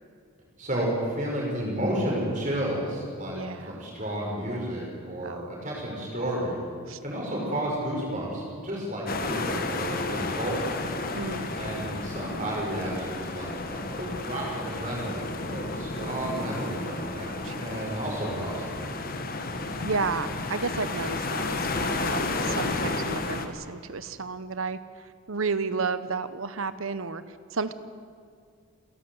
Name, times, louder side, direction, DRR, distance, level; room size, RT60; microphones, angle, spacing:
voice 1, 0.6-3.4 3.7-6.6 7.0-11.0 11.6-17.3 17.6-18.8, right 1 dB, 35° right, -2 dB, 5.8 m, -31 dB
voice 2, 3.3-3.8 5.2-5.5 6.9-7.0 11.1-11.5 17.2-17.9 19.8-24.8 25.3-27.2 27.5-27.7, right 4 dB, 70° right, 13 dB, 0.9 m, -32 dB
sound 1, 9.1-23.5, left 3 dB, 40° left, 1.4 m, -32 dB
27.5 x 11.5 x 8.0 m, 2.1 s
head